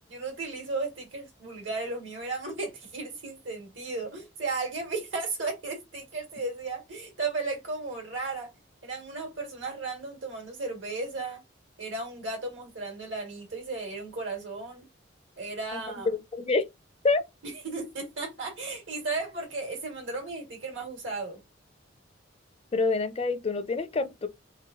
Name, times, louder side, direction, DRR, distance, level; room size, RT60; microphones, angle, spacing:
voice 1, 0.1-8.5 8.8-11.4 11.8-14.9 15.4-16.2 17.4-21.4, right 3 dB, 80° right, 2.0 m, -35 dB
voice 2, 16.1-16.6 17.0-17.2 22.7-24.3, left 3 dB, 30° left, 0.4 m, -26 dB
3.8 x 3.5 x 2.8 m
head